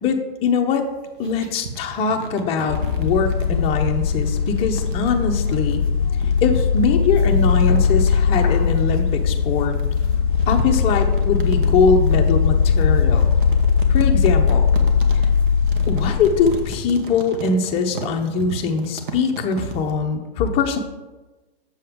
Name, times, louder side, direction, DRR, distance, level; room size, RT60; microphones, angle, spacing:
voice 1, 0.0-0.8 1.2-5.8 6.4-9.7 10.5-13.3 13.9-14.7 15.9-20.8, left 5 dB, 20° left, 3 dB, 0.7 m, -22 dB
sound 1, 0.8-20.0, right 4 dB, 55° right, 1.3 m, -36 dB
sound 2, 2.7-16.7, left 6 dB, 55° left, 0.5 m, -19 dB
7.5 x 6.9 x 3.6 m, 1.2 s
hypercardioid pair, 140°, 31 cm